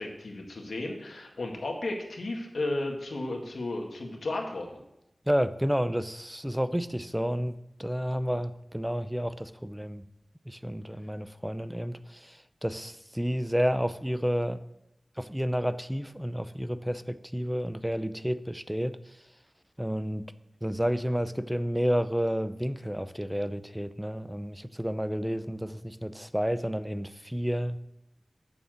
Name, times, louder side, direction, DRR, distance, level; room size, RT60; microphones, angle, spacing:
voice 1, 0.0-4.8, left 2 dB, 85° left, 1 dB, 1.7 m, -34 dB
voice 2, 5.3-10.1 10.5-14.6 15.2-19.2 19.8-20.3 20.6-27.8, equal, 5° right, 13 dB, 0.5 m, -30 dB
8.4 x 7.2 x 7.6 m, 0.86 s
wide cardioid pair, 80°, 0 cm